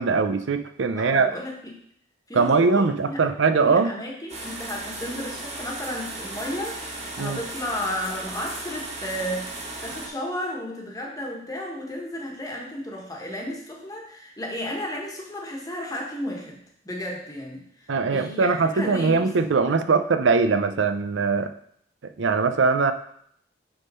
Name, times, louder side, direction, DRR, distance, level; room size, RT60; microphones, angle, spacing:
voice 1, 0.0-1.3 2.3-3.9 7.2-7.4 17.9-21.5 22.2-22.9, right 4 dB, 90° right, 9 dB, 0.5 m, -21 dB
voice 2, 0.9-1.8 2.3-3.3 3.6-19.3, left 1 dB, 20° left, -1 dB, 1.3 m, -33 dB
sound 1, 4.3-10.1, right 2 dB, 35° right, 1.4 m, -36 dB
7.0 x 3.6 x 5.4 m, 0.67 s
head